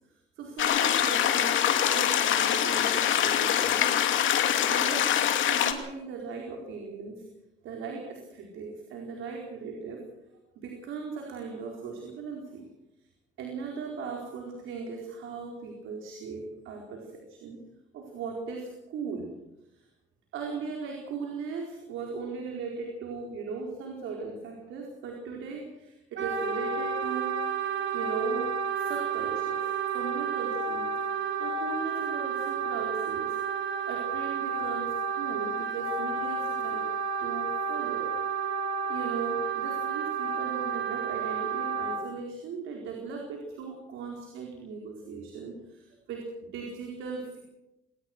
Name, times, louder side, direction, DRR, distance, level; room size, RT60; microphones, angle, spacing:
voice 1, 0.4-7.2 7.6-10.0 10.6-12.6 13.4-17.6 17.9-19.3 19.8-19.9 20.3-27.4 27.9-31.0 31.4-36.9 37.2-38.1 38.8-47.4, right 4 dB, 90° right, 1 dB, 4.7 m, -38 dB
sound 1, 0.6-5.7, left 10 dB, 80° left, 2.6 m, -24 dB
Wind instrument woodwind instrument, 26.2-42.0, right 6 dB, 75° right, 4.8 m, -31 dB
23.5 x 19.0 x 6.2 m, 0.91 s
cardioid pair, 90°, 20 cm